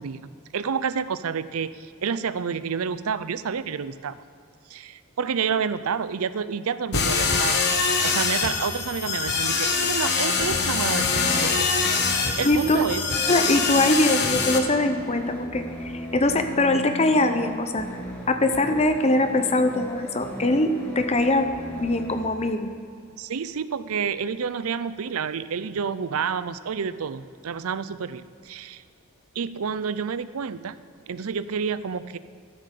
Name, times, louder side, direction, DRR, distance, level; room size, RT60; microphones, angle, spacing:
voice 1, 0.0-4.2 4.7-7.6 8.0-11.8 12.4-13.1 23.2-28.8 29.4-30.8 31.1-32.2, right 6 dB, 75° right, 15 dB, 0.5 m, -29 dB
sound 1, 6.9-14.6, left 5 dB, 50° left, 1.2 m, -24 dB
sound 2, 10.3-22.3, equal, 10° left, 1.7 m, -36 dB
voice 2, 12.4-12.9 13.3-17.9 18.3-21.5 21.7-22.7, left 2 dB, 30° left, 8 dB, 0.7 m, -22 dB
13.5 x 7.8 x 6.7 m, 2.4 s
head